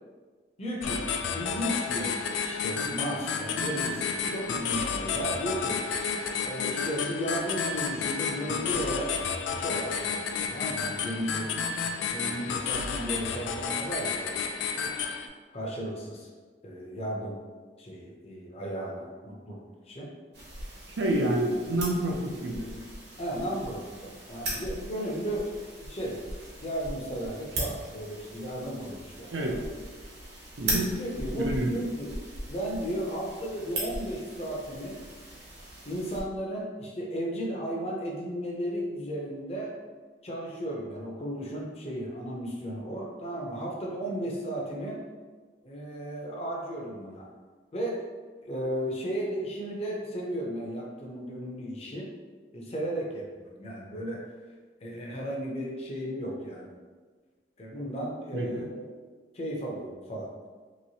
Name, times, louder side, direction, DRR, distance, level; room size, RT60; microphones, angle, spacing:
voice 1, 0.6-1.0 1.3-2.1 2.4-5.8 6.4-9.1 9.5-11.6 12.1-14.5 15.5-16.3 16.6-17.4 17.8-20.1 21.1-21.3 23.2-26.2 26.6-29.6 30.6-32.1 32.5-35.0 35.8-39.7 40.2-45.0 45.6-47.3 47.7-48.0 48.4-52.1 52.5-54.2 54.8-56.8 57.6-58.9 59.3-60.3, equal, 35° left, -2 dB, 0.6 m, -34 dB
sound 1, 0.8-15.3, left 5 dB, 85° left, 0.3 m, -31 dB
sound 2, 20.3-36.2, right 1 dB, 70° right, 1.0 m, -39 dB
voice 2, 21.0-22.7 29.3-29.6 30.6-30.9 31.3-31.7 58.3-58.6, right 1 dB, 85° right, 0 dB, 0.6 m, -28 dB
3.0 x 3.0 x 2.7 m, 1.4 s
head